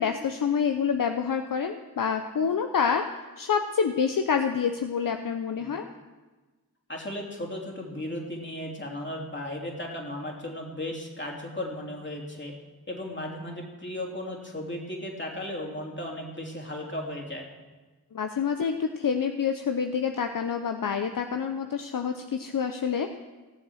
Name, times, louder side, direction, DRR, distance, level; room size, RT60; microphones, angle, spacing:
voice 1, 0.0-3.1 3.4-5.9 18.1-23.2, left 6 dB, 65° left, 6 dB, 0.8 m, -27 dB
voice 2, 6.9-12.5 12.9-17.5, left 1 dB, 30° left, 0 dB, 3.3 m, -35 dB
17.0 x 7.3 x 6.3 m, 1.2 s
cardioid pair, 50°, 37 cm